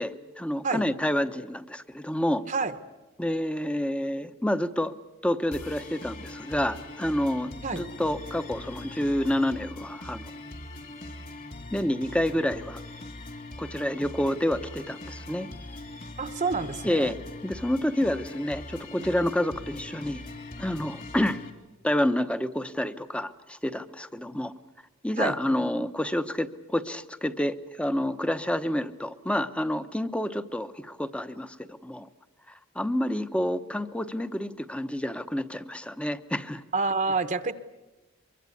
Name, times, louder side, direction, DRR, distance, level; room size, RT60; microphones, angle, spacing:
voice 1, 0.0-2.4 3.2-4.9 5.2-10.2 11.7-12.8 13.6-15.5 16.8-17.2 17.4-20.2 20.6-21.4 21.8-24.5 25.0-32.1 32.7-36.6, left 1 dB, 5° left, 11 dB, 0.8 m, -28 dB
sound 1, 5.5-21.5, left 2 dB, 45° left, 2.7 m, -41 dB
voice 2, 16.2-17.2 25.2-25.4 36.7-37.5, right 4 dB, 40° right, 10 dB, 1.0 m, -28 dB
24.0 x 23.0 x 8.5 m, 1.1 s
head